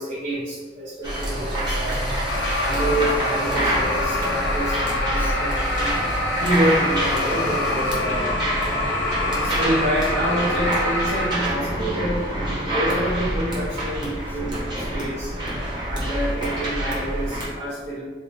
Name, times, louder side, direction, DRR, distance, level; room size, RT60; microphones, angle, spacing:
voice 1, 0.0-2.0 2.6-5.6 6.4-8.3 9.2-15.3 15.9-18.0, right 1 dB, 40° right, -7 dB, 0.6 m, -27 dB
sound 1, 1.0-17.5, right 1 dB, 25° right, 1.0 m, -26 dB
sound 2, 2.3-11.3, left 2 dB, 70° left, 0.6 m, -26 dB
voice 2, 5.0-6.0 8.7-9.6 13.8-16.2 17.5-17.9, left 2 dB, 10° left, 1 dB, 0.4 m, -50 dB
3.3 x 2.0 x 4.2 m, 1.4 s
head